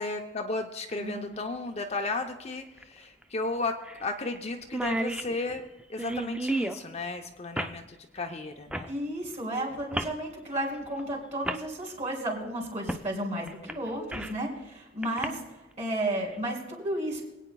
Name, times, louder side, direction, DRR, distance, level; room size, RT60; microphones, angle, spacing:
voice 1, 0.0-8.9, left 3 dB, 35° left, 4 dB, 0.6 m, -34 dB
sound 1, 0.9-1.0 2.8-2.9 3.2-3.3 3.9-4.1 4.4-4.5 4.6-6.8 7.6-7.8 8.7-8.9 9.9-10.2 11.0-11.1 11.4-11.6 12.9-13.1 13.5-14.4 15.0-15.3, right 1 dB, 5° right, 0.4 m, -32 dB
voice 2, 8.9-17.2, right 1 dB, 35° right, -1 dB, 3.4 m, -33 dB
24.5 x 9.1 x 2.3 m, 1.0 s
head